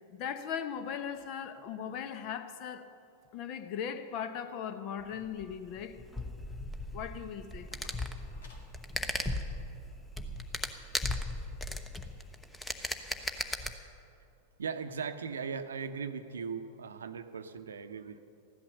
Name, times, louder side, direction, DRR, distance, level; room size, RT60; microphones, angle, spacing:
voice 1, 0.1-2.9 3.3-6.0 6.9-7.7, left 8 dB, 40° left, 0.9 m, -38 dB
sound 1, 5.1-13.7, left 1 dB, 10° left, 0.9 m, -37 dB
sound 2, 7.7-10.1, left 2 dB, 65° left, 2.1 m, -60 dB
voice 2, 14.6-18.2, right 6 dB, 70° right, 0.7 m, -38 dB
14.5 x 11.5 x 6.8 m
figure-of-eight pair, 90°, 0 cm